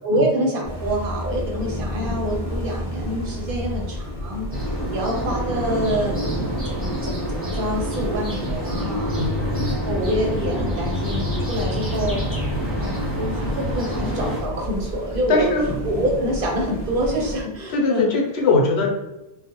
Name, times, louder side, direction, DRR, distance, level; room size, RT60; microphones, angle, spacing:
voice 1, 0.0-6.2 6.7-9.2 9.7-12.2 12.8-15.5 15.8-18.2, right 1 dB, 60° right, -1 dB, 0.7 m, -26 dB
sound 1, 0.6-17.4, left 1 dB, 25° left, 0.4 m, -31 dB
sound 2, 4.5-14.4, equal, 15° right, 0.9 m, -27 dB
voice 2, 9.2-9.7 15.3-15.6 17.7-18.9, left 3 dB, 80° left, 0 dB, 0.9 m, -21 dB
2.3 x 2.1 x 2.8 m, 0.96 s
omnidirectional pair, 1.1 m